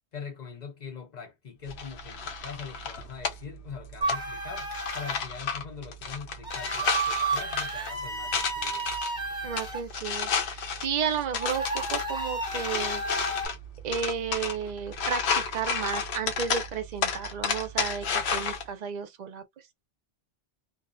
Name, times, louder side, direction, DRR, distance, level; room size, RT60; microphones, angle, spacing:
voice 1, 0.1-9.0, left 6 dB, 50° left, 0.6 m, -42 dB
sound 1, 1.7-18.6, left 5 dB, 75° left, 0.8 m, -32 dB
sound 2, 4.0-5.2 6.4-9.8 11.4-13.5, right 3 dB, 5° right, 0.7 m, -32 dB
voice 2, 9.4-13.0 13.8-19.4, right 7 dB, 50° right, 0.5 m, -33 dB
2.6 x 2.0 x 2.4 m
omnidirectional pair, 1.1 m